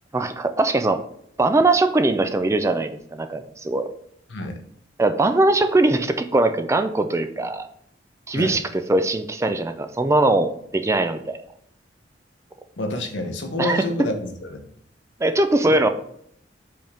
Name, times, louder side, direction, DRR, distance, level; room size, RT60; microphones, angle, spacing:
voice 1, 0.1-1.0 1.4-3.9 5.0-7.7 8.3-11.4 13.6-13.9 15.2-15.9, right 2 dB, 15° right, 8 dB, 0.4 m, -21 dB
voice 2, 4.3-4.6 8.3-8.6 12.8-14.7 15.7-15.8, left 1 dB, 85° left, 4 dB, 1.0 m, -28 dB
5.2 x 3.6 x 5.1 m, 0.69 s
head